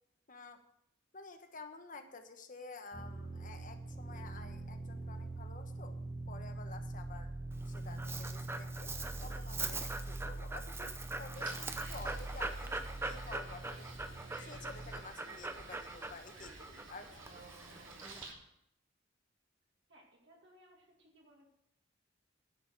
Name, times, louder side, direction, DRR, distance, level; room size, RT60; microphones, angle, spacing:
voice 1, 0.3-0.6 1.1-6.0 6.3-7.3 7.6-8.9 9.2-14.0 14.4-17.2, left 3 dB, 45° left, 6 dB, 1.2 m, -51 dB
sound 1, 2.9-15.0, right 2 dB, 35° right, 1.6 m, -44 dB
Dog, 7.5-18.3, right 3 dB, 15° right, 0.6 m, -43 dB
sound 2, 11.3-18.4, right 3 dB, 85° right, 2.8 m, -53 dB
voice 2, 19.9-21.5, equal, 60° right, -1 dB, 2.2 m, -63 dB
10.5 x 7.0 x 7.7 m, 0.75 s
head